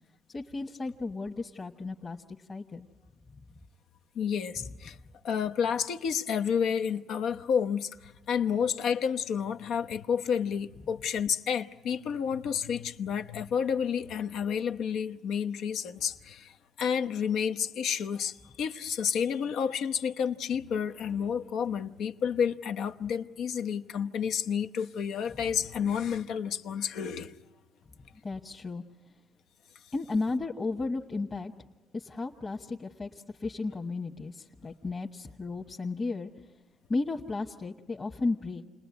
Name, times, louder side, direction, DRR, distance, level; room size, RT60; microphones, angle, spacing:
voice 1, 0.3-2.2 2.5-2.9 28.2-28.8 29.9-31.5 31.9-33.1 33.4-36.3 36.9-38.6, left 3 dB, 35° left, 1.4 m, -34 dB
voice 2, 4.1-5.0 5.2-27.4, left 7 dB, 80° left, 0.9 m, -30 dB
29.0 x 20.5 x 9.7 m
cardioid pair, 90°, 0 cm